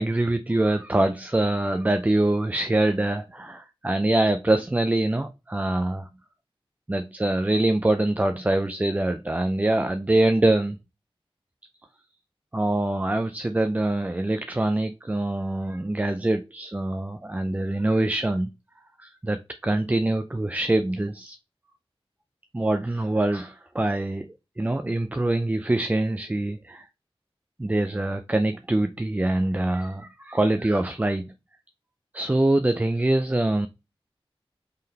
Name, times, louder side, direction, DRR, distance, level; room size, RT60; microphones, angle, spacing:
voice 1, 0.0-6.1 6.9-10.8 12.5-18.5 19.0-21.4 22.5-26.8 27.6-31.3 32.1-33.7, right 1 dB, 15° right, 0.3 m, -24 dB
3.8 x 3.2 x 2.8 m
wide cardioid pair, 50°, 10 cm